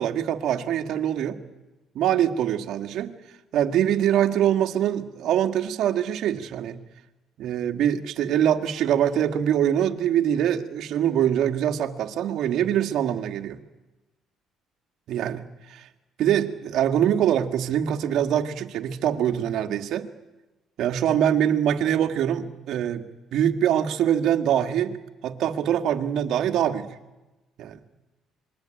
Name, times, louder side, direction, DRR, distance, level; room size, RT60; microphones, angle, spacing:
voice 1, 0.0-1.4 2.0-3.1 3.5-6.8 7.4-13.6 15.1-15.4 15.7-15.8 16.2-20.1 20.8-23.0 23.3-26.9 27.6-27.8, right 10 dB, 70° right, 6 dB, 1.9 m, -24 dB
26.5 x 22.0 x 9.1 m, 1.0 s
cardioid pair, 90°, 0 cm